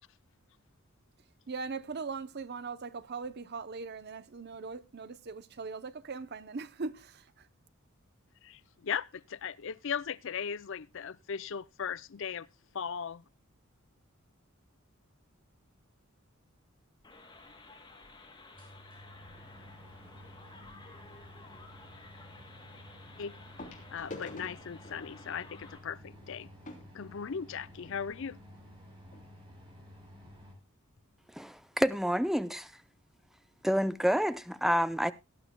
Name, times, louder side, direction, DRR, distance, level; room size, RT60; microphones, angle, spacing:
voice 1, 1.5-7.5, right 4 dB, 50° right, 0.7 m, -40 dB
voice 2, 8.4-12.5 12.7-13.2 23.2-23.3 23.9-26.5 26.9-28.4, left 7 dB, 60° left, 0.5 m, -38 dB
sound 1, 17.0-25.8, left 3 dB, 20° left, 2.6 m, -54 dB
sound 2, 17.3-17.4 18.0-18.1 18.4-30.5, equal, 25° right, 5.5 m, -53 dB
sound 3, 22.0-22.1 23.6-28.0 28.8-28.9 29.1-29.3 29.8-29.9, left 2 dB, 35° left, 3.4 m, -49 dB
voice 3, 31.3-32.7 33.6-35.1, equal, ahead, 0.5 m, -28 dB
18.0 x 11.0 x 2.2 m
head